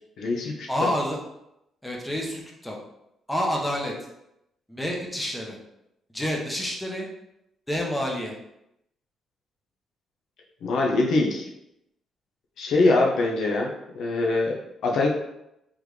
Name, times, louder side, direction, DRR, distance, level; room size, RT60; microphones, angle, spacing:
voice 1, 0.2-0.9 10.6-11.5 12.6-15.1, left 2 dB, 70° left, -1 dB, 0.7 m, -23 dB
voice 2, 0.7-1.2 1.8-2.8 3.3-3.9 4.7-5.6 6.1-7.1 7.7-8.3, equal, 5° left, -1 dB, 1.0 m, -28 dB
3.6 x 3.4 x 3.2 m, 0.83 s
cardioid pair, 90°, 0 cm